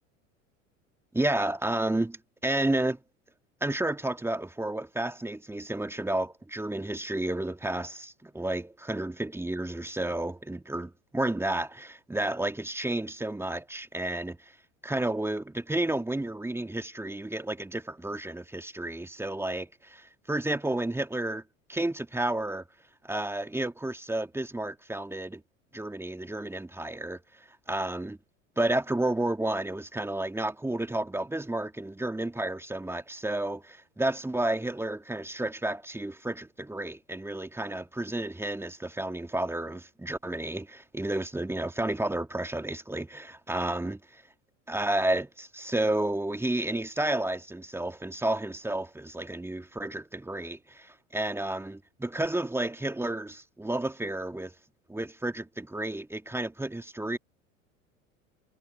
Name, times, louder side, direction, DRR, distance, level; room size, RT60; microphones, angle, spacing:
voice 1, 1.1-3.0 3.6-14.5 14.8-21.4 21.7-22.6 23.0-25.4 25.7-27.2 27.7-28.2 28.6-44.2 44.7-54.5 54.9-57.2, right 1 dB, 5° right, 2.2 m, -31 dB
figure-of-eight pair, 75°, 39 cm